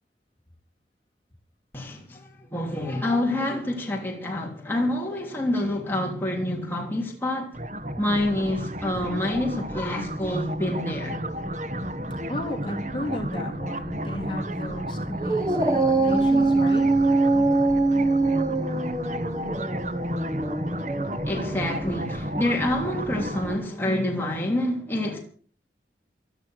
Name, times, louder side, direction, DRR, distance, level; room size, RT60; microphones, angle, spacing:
voice 1, 1.7-7.5 8.0-11.2 21.2-25.2, left 1 dB, 10° left, 3.2 m, -27 dB
sound 1, 7.5-23.5, equal, 40° right, 1.4 m, -32 dB
voice 2, 12.3-16.9, left 1 dB, 30° left, 3.4 m, -34 dB
Dog, 15.2-21.8, right 2 dB, 20° right, 1.6 m, -23 dB
16.0 x 13.0 x 6.4 m
head